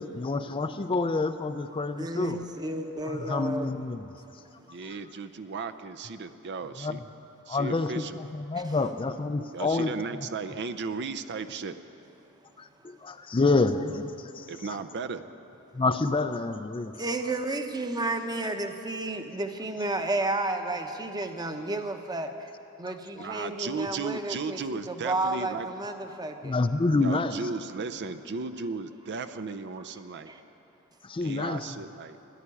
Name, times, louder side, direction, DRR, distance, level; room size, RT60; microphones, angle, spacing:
voice 1, 0.0-2.4 3.1-4.0 6.8-7.0 7.5-9.9 12.6-14.8 15.7-17.0 23.2-23.3 26.4-27.4 31.0-31.7, left 3 dB, 25° left, 9 dB, 0.4 m, -28 dB
voice 2, 2.0-3.8 8.5-8.6 13.7-13.8 16.9-22.5 22.8-24.6 24.9-26.6 30.3-30.4, right 2 dB, 20° right, 6 dB, 0.9 m, -32 dB
voice 3, 4.7-7.0 7.5-8.2 9.5-11.8 14.5-15.2 23.2-25.7 27.0-30.3 31.2-32.2, right 4 dB, 50° right, 10 dB, 0.5 m, -35 dB
14.0 x 10.5 x 9.8 m, 2.9 s
head